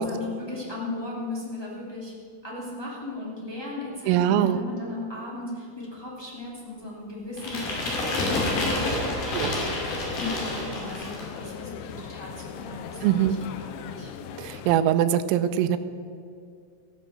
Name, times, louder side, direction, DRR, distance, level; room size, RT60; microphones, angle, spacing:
voice 1, 0.0-2.1 2.4-13.3 13.6-14.1, left 2 dB, 10° left, -6 dB, 1.3 m, -37 dB
voice 2, 4.1-4.6 9.3-9.6 13.0-13.3 14.4-15.8, right 11 dB, 90° right, 10 dB, 3.4 m, -22 dB
sound 1, 7.4-11.4, left 2 dB, 50° left, 3.9 m, -28 dB
sound 2, 9.6-14.8, left 7 dB, 85° left, 2.8 m, -39 dB
14.5 x 9.0 x 7.5 m, 2.2 s
omnidirectional pair, 5.9 m